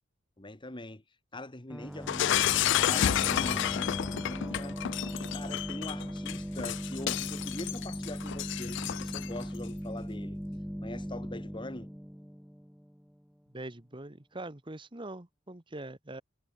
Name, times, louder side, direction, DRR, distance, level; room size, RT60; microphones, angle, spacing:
voice 1, 0.4-1.0 1.3-10.4 10.8-11.9, left 2 dB, 25° left, 1.5 m, -43 dB
sound 1, 1.7-13.2, equal, ahead, 1.0 m, -38 dB
Shatter, 2.1-9.4, left 11 dB, 60° left, 0.4 m, -31 dB
voice 2, 13.5-16.2, right 2 dB, 25° right, 1.3 m, -43 dB
head